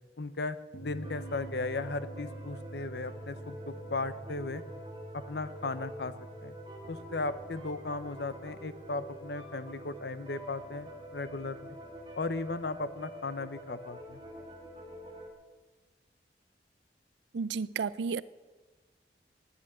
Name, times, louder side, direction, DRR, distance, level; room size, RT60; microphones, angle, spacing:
voice 1, 0.2-4.6 5.1-6.1 6.4-6.5 6.9-11.8 12.2-14.2, left 3 dB, 75° left, 13 dB, 0.8 m, -36 dB
sound 1, 0.7-13.7, right 2 dB, 55° left, 1.1 m, -48 dB
sound 2, 1.0-15.3, equal, 25° right, 2.0 m, -47 dB
voice 2, 17.3-18.2, right 5 dB, 85° right, 19 dB, 0.4 m, -32 dB
11.0 x 9.1 x 9.2 m, 1.3 s
head